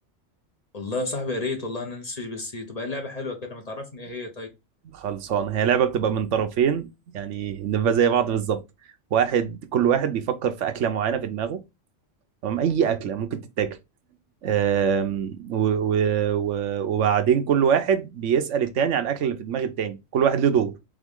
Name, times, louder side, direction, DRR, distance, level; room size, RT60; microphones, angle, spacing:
voice 1, 0.7-4.5, left 2 dB, 35° left, 0.9 m, -31 dB
voice 2, 4.9-6.9 7.1-8.6 9.1-11.6 12.4-13.8 14.4-20.7, right 8 dB, 85° right, 1.1 m, -23 dB
3.7 x 3.6 x 3.6 m
omnidirectional pair, 1.2 m